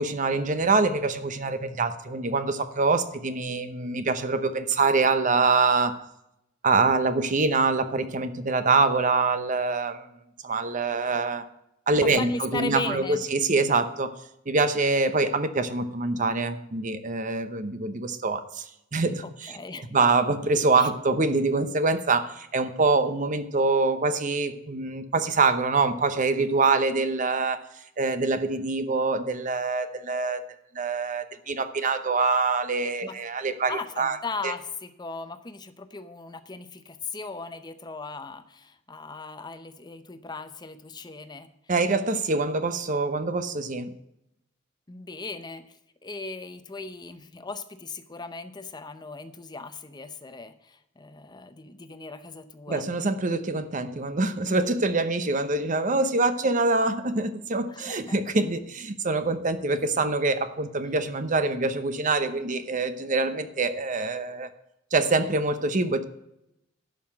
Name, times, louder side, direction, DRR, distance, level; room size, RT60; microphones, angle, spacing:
voice 1, 0.0-6.0 6.6-10.1 10.4-11.5 11.9-14.1 14.5-18.6 18.9-19.5 19.9-27.6 28.0-30.4 30.7-34.2 34.4-34.5 41.7-43.9 52.7-64.5 64.9-66.0, right 3 dB, 40° right, 11 dB, 0.8 m, -25 dB
voice 2, 12.2-13.2 19.2-19.9 20.8-20.9 33.0-33.2 33.7-41.5 44.9-45.8 46.0-52.9 57.7-58.3, left 3 dB, 20° left, 11 dB, 0.6 m, -38 dB
11.5 x 5.8 x 7.4 m, 0.83 s
head